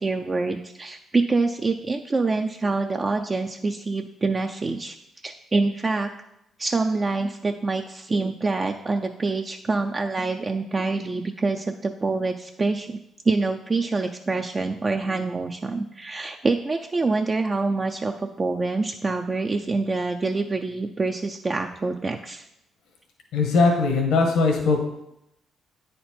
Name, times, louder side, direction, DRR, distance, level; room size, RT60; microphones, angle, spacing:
voice 1, 0.0-5.0 5.2-6.1 6.6-13.0 13.3-22.4, right 3 dB, 30° right, 4 dB, 0.4 m, -26 dB
voice 2, 23.3-24.8, left 3 dB, 85° left, 2 dB, 1.3 m, -20 dB
9.1 x 4.3 x 4.3 m, 0.83 s
cardioid pair, 90°, 0 cm